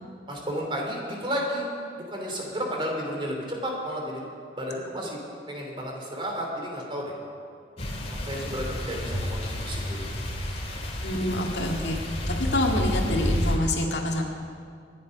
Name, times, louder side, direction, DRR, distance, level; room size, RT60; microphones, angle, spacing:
voice 1, 0.3-1.7 2.1-4.2 4.6-5.2 5.5-7.1 8.2-10.1, equal, 30° right, 0 dB, 3.1 m, -32 dB
sound 1, 7.8-13.6, equal, 35° left, 2.1 m, -30 dB
voice 2, 11.0-12.0 12.3-14.2, left 1 dB, 70° left, 0 dB, 2.1 m, -27 dB
25.0 x 10.5 x 5.3 m, 2.2 s
head